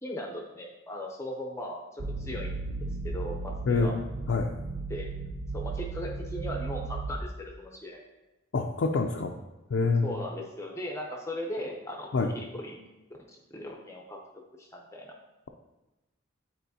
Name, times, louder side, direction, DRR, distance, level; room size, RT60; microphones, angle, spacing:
voice 1, 0.0-2.6 3.0-3.9 4.9-5.1 5.5-8.0 10.0-12.1 12.6-12.8 13.5-14.2 14.6-15.1, left 1 dB, 15° left, 0 dB, 0.6 m, -38 dB
sound 1, 2.0-7.2, right 3 dB, 55° right, 0.5 m, -35 dB
voice 2, 3.7-4.5 8.5-9.4 9.7-10.2 12.1-12.3, left 4 dB, 65° left, 1 dB, 0.4 m, -27 dB
9.2 x 4.2 x 2.7 m, 1.0 s
head